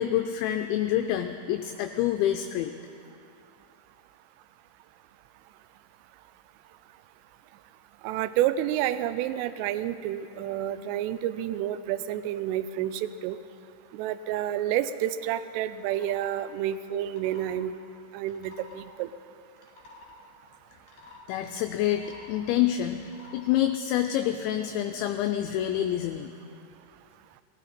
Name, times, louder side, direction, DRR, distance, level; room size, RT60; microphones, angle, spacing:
voice 1, 0.0-2.7 21.3-26.3, left 11 dB, 85° left, 7 dB, 2.6 m, -27 dB
voice 2, 8.0-13.4 13.9-17.7 18.1-19.1, right 12 dB, 85° right, 13 dB, 3.1 m, -29 dB
sound 1, 15.8-16.3 16.9-17.6 18.2-18.9 19.5-20.2 20.8-21.2 21.8-22.4 22.9-23.4, left 3 dB, 55° left, 2.7 m, -50 dB
18.0 x 16.0 x 4.3 m, 2.5 s
omnidirectional pair, 5.7 m